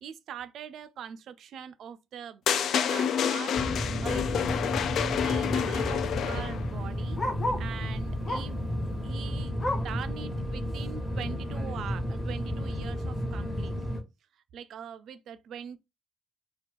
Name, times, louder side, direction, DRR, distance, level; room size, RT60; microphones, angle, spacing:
voice 1, 0.0-3.6 4.0-4.6 5.0-7.2 7.6-8.6 9.0-13.8 14.5-15.8, right 8 dB, 75° right, 0.3 m, -42 dB
sound 1, 2.5-6.7, left 8 dB, 70° left, 0.3 m, -28 dB
sound 2, 3.5-14.0, equal, 20° left, 1.3 m, -32 dB
Bark, 7.1-7.8 8.2-8.6 9.0-10.0 10.5-10.6 11.0-11.1 11.7-11.8, left 1 dB, 35° left, 0.8 m, -35 dB
2.8 x 2.3 x 3.4 m
supercardioid pair, 65°, 0 cm